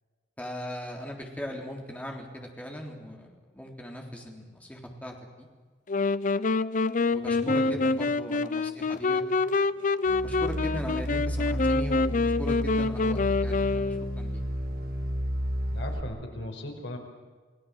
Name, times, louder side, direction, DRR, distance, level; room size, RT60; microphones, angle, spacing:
voice 1, 0.4-5.5 7.1-9.6 10.2-14.4, equal, 10° left, 1 dB, 3.6 m, -39 dB
sound 1, 5.9-14.3, left 3 dB, 45° left, 0.6 m, -26 dB
voice 2, 7.3-7.9 15.7-17.0, left 1 dB, 70° left, 2 dB, 5.2 m, -38 dB
sound 2, 10.1-16.0, equal, 55° right, 1.9 m, -32 dB
29.5 x 18.0 x 7.5 m, 1.5 s
head